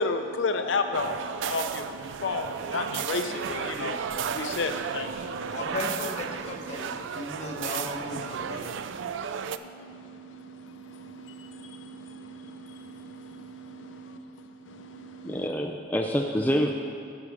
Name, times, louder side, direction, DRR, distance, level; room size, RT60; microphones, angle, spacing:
voice 1, 0.0-6.7 9.4-15.5, left 3 dB, 80° left, 7 dB, 0.5 m, -34 dB
sound 1, 0.9-9.6, right 7 dB, 80° right, 0.3 m, -34 dB
voice 2, 5.5-8.7, left 2 dB, 35° left, -1 dB, 1.2 m, -36 dB
voice 3, 15.2-16.7, equal, 10° left, 2 dB, 0.3 m, -26 dB
11.0 x 4.8 x 6.5 m, 2.3 s
head